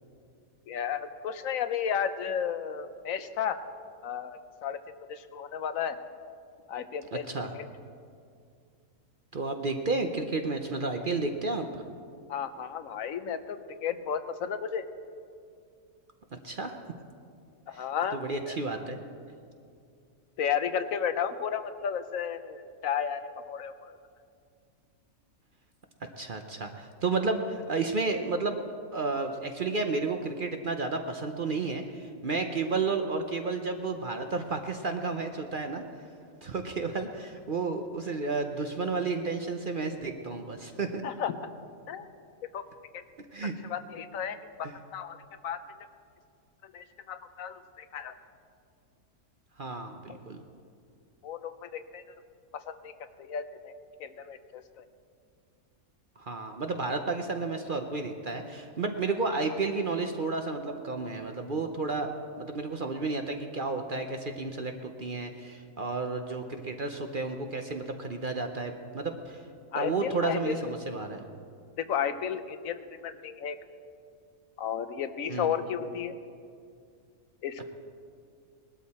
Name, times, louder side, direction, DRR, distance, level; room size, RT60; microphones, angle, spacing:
voice 1, 0.7-3.6 4.0-6.0 6.7-7.2 7.5-7.7 12.3-14.8 17.7-18.6 20.4-23.9 41.0-41.5 41.9-42.1 42.5-42.7 42.9-43.0 43.4-45.2 45.4-45.6 46.6-48.1 50.1-50.2 51.2-52.0 52.5-52.9 53.2-53.7 54.0-54.8 69.7-70.7 71.8-73.6 74.6-76.1 77.4-77.7, left 8 dB, 70° left, 10 dB, 1.1 m, -33 dB
voice 2, 9.3-11.8 16.3-16.8 17.7-17.9 18.1-19.0 26.2-28.6 28.9-35.8 36.4-41.0 43.3-43.5 44.6-44.7 49.6-50.4 56.2-62.1 62.4-69.4 69.7-71.3 75.3-75.6, right 3 dB, 45° right, 5 dB, 0.8 m, -32 dB
19.5 x 12.5 x 4.2 m, 2.3 s
omnidirectional pair, 1.5 m